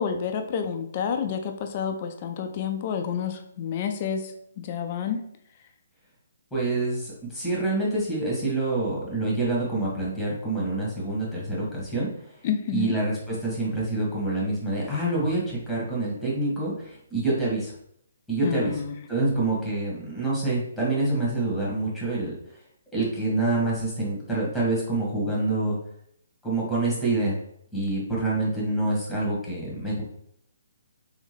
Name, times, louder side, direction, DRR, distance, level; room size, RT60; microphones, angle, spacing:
voice 1, 0.0-5.2 12.4-12.9 18.4-19.0, left 7 dB, 35° left, 6 dB, 0.5 m, -29 dB
voice 2, 6.5-12.1 12.7-17.7 18.3-18.8 19.1-22.6 22.9-25.8 26.4-27.4 27.7-30.0, right 2 dB, 5° left, -6 dB, 1.6 m, -26 dB
3.5 x 3.5 x 3.4 m, 0.72 s
figure-of-eight pair, 135°, 0 cm